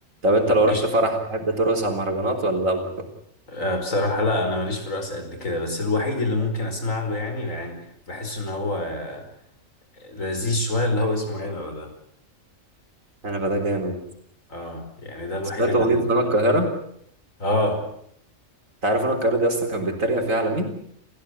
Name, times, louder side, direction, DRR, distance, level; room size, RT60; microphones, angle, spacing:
voice 1, 0.2-3.1 13.2-14.0 15.6-16.7 18.8-20.7, right 1 dB, 85° right, 4 dB, 4.3 m, -22 dB
voice 2, 3.5-9.2 10.0-11.9 14.5-16.0 17.4-17.8, left 2 dB, 80° left, 5 dB, 5.4 m, -26 dB
29.0 x 15.5 x 8.1 m, 0.70 s
omnidirectional pair, 1.4 m